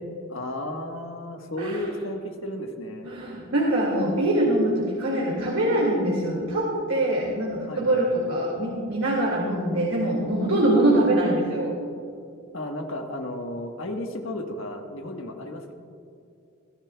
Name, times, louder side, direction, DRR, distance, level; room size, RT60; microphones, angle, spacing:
voice 1, 0.3-3.1 7.6-8.1 12.5-15.7, left 1 dB, 70° left, 3 dB, 1.4 m, -33 dB
voice 2, 3.0-11.7, right 1 dB, 90° right, -3 dB, 2.3 m, -23 dB
21.5 x 13.0 x 2.3 m, 2.6 s
head